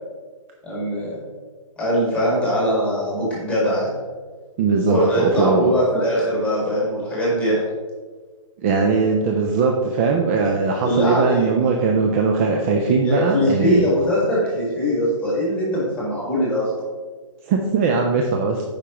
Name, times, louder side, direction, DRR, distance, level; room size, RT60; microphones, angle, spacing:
voice 1, 0.6-1.2 1.8-3.9 4.9-7.6 10.8-11.5 13.0-16.7, equal, 5° left, -6 dB, 1.9 m, -21 dB
voice 2, 4.6-5.7 8.6-13.9 17.4-18.6, right 4 dB, 25° right, 1 dB, 0.4 m, -20 dB
8.1 x 5.1 x 3.0 m, 1.4 s
hypercardioid pair, 155°, 17 cm